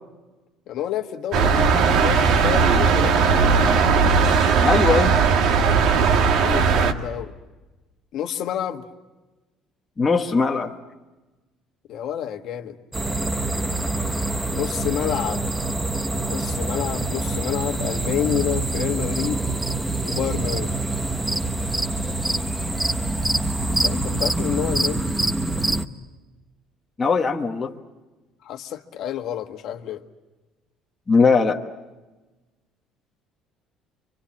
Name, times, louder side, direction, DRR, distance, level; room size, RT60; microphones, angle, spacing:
voice 1, 0.7-3.6 6.4-7.3 8.1-8.8 11.9-12.8 14.5-15.5 16.3-19.5 20.0-20.8 23.7-25.1 28.4-30.0, left 10 dB, 50° left, 5 dB, 1.5 m, -29 dB
sound 1, 1.3-6.9, right 5 dB, 55° right, 1.7 m, -18 dB
voice 2, 4.6-5.2 10.0-10.7 27.0-27.7 31.1-31.6, left 4 dB, 15° left, 1 dB, 1.2 m, -19 dB
sound 2, 12.9-25.8, right 2 dB, 10° right, 0.8 m, -25 dB
29.5 x 25.0 x 7.2 m, 1.2 s
cardioid pair, 175°, 0 cm